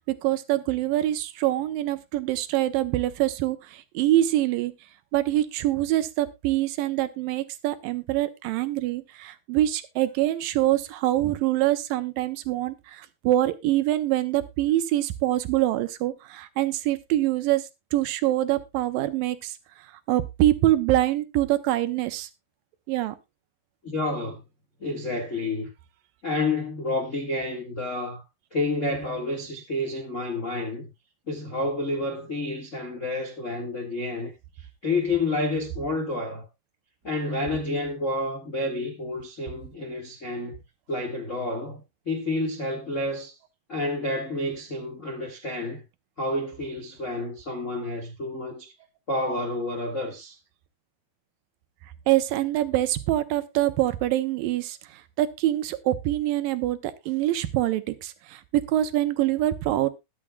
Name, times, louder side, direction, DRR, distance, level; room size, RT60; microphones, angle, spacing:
voice 1, 0.1-4.7 5.1-19.6 20.1-22.3 22.9-23.2 52.1-59.9, right 14 dB, 75° right, 2.3 m, -25 dB
voice 2, 23.8-24.4 24.8-25.7 26.2-28.2 28.5-30.9 31.3-34.3 34.8-36.5 37.0-40.6 40.9-43.3 43.7-45.8 46.2-48.7 49.1-50.4, left 2 dB, 50° left, 0.9 m, -29 dB
21.0 x 7.3 x 2.3 m
omnidirectional pair, 4.4 m